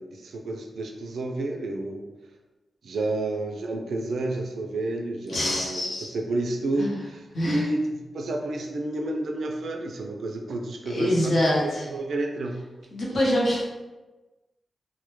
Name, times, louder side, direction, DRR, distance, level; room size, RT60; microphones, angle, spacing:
voice 1, 0.0-2.0 2.8-5.8 6.1-7.8 8.1-11.1 11.6-12.6, right 2 dB, 75° right, 3 dB, 0.3 m, -30 dB
voice 2, 5.3-6.1 6.7-7.0 7.3-7.6 10.9-11.9 12.9-13.6, equal, 65° left, -5 dB, 0.8 m, -25 dB
2.1 x 2.1 x 3.0 m, 1.2 s
cardioid pair, 90°, 0 cm